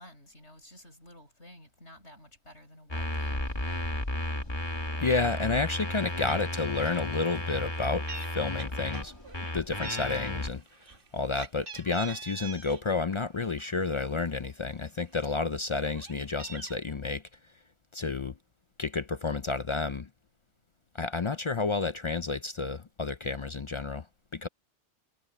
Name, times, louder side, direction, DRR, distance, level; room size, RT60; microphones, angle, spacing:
voice 1, 0.0-3.8, left 1 dB, 70° left, 7.3 m, -52 dB
sound 1, 2.9-10.5, left 1 dB, 20° left, 2.2 m, -34 dB
voice 2, 5.0-9.1 9.5-10.6 11.1-17.2 17.9-18.4 18.8-20.1 20.9-24.1 24.3-24.5, left 4 dB, 45° left, 0.4 m, -30 dB
Meow, 6.3-6.5 6.8-7.1 7.3-8.3 8.6-9.5 9.8-12.8 13.2-14.3 14.8-14.9 15.2-16.8, right 4 dB, 50° right, 1.6 m, -45 dB
omnidirectional pair, 1.2 m